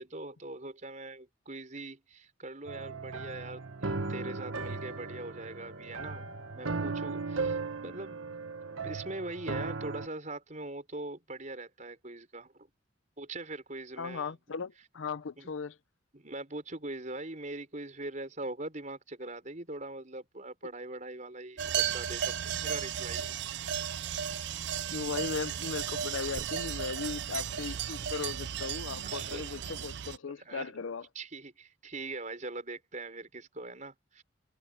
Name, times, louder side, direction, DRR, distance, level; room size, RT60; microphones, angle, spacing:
voice 1, 0.0-12.7 13.2-14.3 15.4-15.5 16.1-23.4 23.7-24.0 27.9-28.2 29.0-29.5 30.2-30.9 31.1-34.2, right 2 dB, 40° right, 5.6 m, -42 dB
sound 1, 2.7-10.1, right 3 dB, 90° right, 1.6 m, -37 dB
voice 2, 14.0-15.7 24.9-31.0, left 5 dB, 80° left, 0.6 m, -37 dB
sound 2, 21.6-30.2, right 9 dB, 60° right, 0.5 m, -35 dB
head